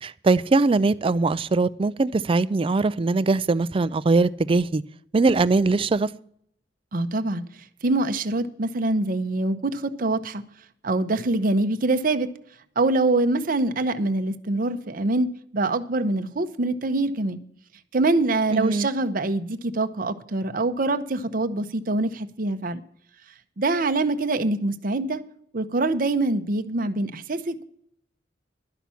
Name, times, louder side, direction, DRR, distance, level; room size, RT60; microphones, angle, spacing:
voice 1, 0.0-4.8 5.1-6.1 18.5-18.9, right 3 dB, 30° right, 0.4 m, -21 dB
voice 2, 6.9-7.4 7.8-10.4 10.8-12.3 12.8-15.3 15.5-17.4 17.9-22.8 23.6-25.2 25.5-27.6, right 2 dB, 50° right, 0.8 m, -24 dB
11.5 x 5.9 x 8.3 m
head